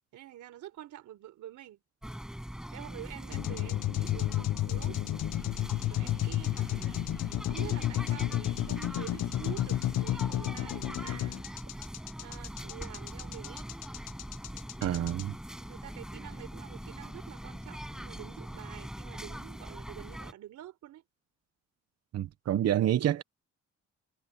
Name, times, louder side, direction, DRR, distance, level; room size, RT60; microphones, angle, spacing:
voice 1, 0.1-1.8 2.7-5.0 5.9-7.0 7.5-11.4 12.2-13.7 15.7-21.0, right 12 dB, 85° right, 3.9 m, -47 dB
sound 1, 2.0-20.3, equal, ahead, 5.5 m, -42 dB
sound 2, 3.3-15.2, left 14 dB, 60° left, 0.5 m, -32 dB
voice 2, 14.8-15.3 22.1-23.2, right 11 dB, 60° right, 1.0 m, -28 dB
cardioid pair, 115°, 29 cm